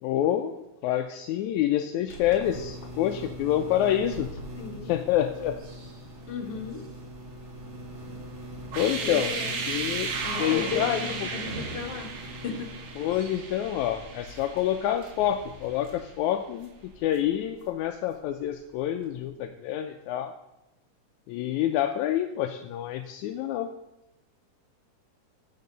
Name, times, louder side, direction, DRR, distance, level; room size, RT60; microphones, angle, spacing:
voice 1, 0.0-4.3 4.9-5.6 8.8-11.3 13.0-20.3 21.3-23.7, left 11 dB, 80° left, 6 dB, 1.8 m, -27 dB
sound 1, 2.1-19.3, equal, 40° right, 2.8 m, -43 dB
voice 2, 4.6-5.0 6.3-6.8 9.0-9.6 10.2-12.1 12.4-12.7, left 6 dB, 50° left, 2 dB, 2.3 m, -35 dB
sound 2, 8.6-15.5, right 4 dB, 65° right, 2.7 m, -35 dB
14.5 x 9.4 x 4.0 m, 0.94 s
omnidirectional pair, 3.8 m